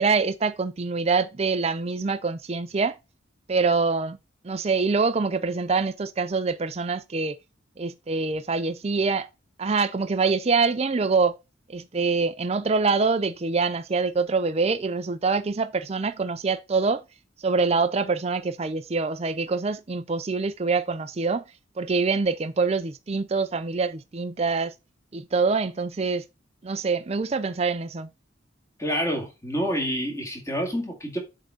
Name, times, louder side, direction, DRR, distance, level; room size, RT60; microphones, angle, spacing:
voice 1, 0.0-3.0 3.5-4.2 4.4-7.4 7.8-9.3 9.6-11.4 11.7-17.0 17.4-21.4 21.8-24.7 25.1-26.2 26.6-28.1, right 4 dB, 30° right, 0.5 m, -25 dB
voice 2, 28.8-31.2, equal, 15° left, 2.1 m, -28 dB
7.4 x 3.7 x 4.1 m
head